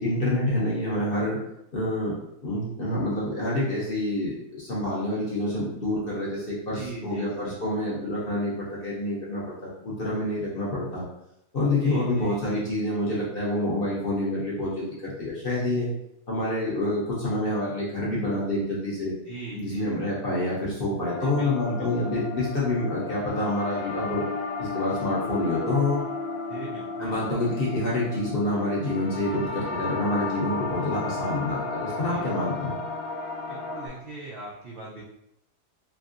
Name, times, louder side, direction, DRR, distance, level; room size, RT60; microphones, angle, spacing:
voice 1, 0.0-1.4 1.7-2.1 2.4-11.1 11.5-15.9 16.3-19.1 19.6-24.2 24.6-26.0 27.0-32.7, left 1 dB, 50° left, -7 dB, 0.7 m, -27 dB
voice 2, 6.7-7.6 11.8-12.7 19.2-20.1 21.2-22.2 26.5-27.5 32.0-32.3 33.5-35.0, right 2 dB, 75° right, -5 dB, 0.5 m, -41 dB
sound 1, 21.0-33.9, left 4 dB, 90° left, 0.5 m, -34 dB
3.2 x 2.6 x 2.5 m, 0.83 s
omnidirectional pair, 1.7 m